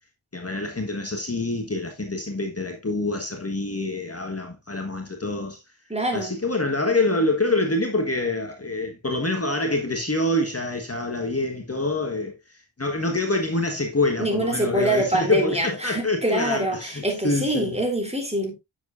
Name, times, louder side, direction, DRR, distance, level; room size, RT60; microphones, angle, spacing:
voice 1, 0.3-5.6 6.1-17.8, left 2 dB, 30° left, 1.6 m, -26 dB
voice 2, 5.9-6.3 14.2-18.6, right 1 dB, 15° right, 3.7 m, -25 dB
9.5 x 7.3 x 2.6 m
cardioid pair, 40°, 47 cm